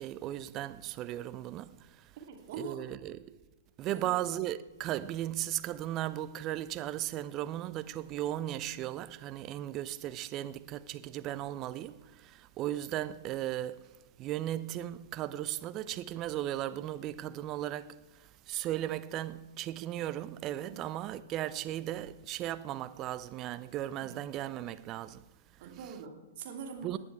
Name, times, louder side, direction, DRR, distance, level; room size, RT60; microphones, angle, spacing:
voice 1, 0.0-2.1 2.6-3.4 3.8-13.9 14.2-25.2 25.6-25.9 26.8-27.0, right 13 dB, 35° right, 0.7 m, -36 dB
voice 2, 2.2-2.8 3.9-4.1 20.7-20.8 24.0-24.2 25.6-27.0, right 5 dB, 50° right, 2.7 m, -43 dB
19.0 x 9.9 x 4.7 m
figure-of-eight pair, 105°, 0 cm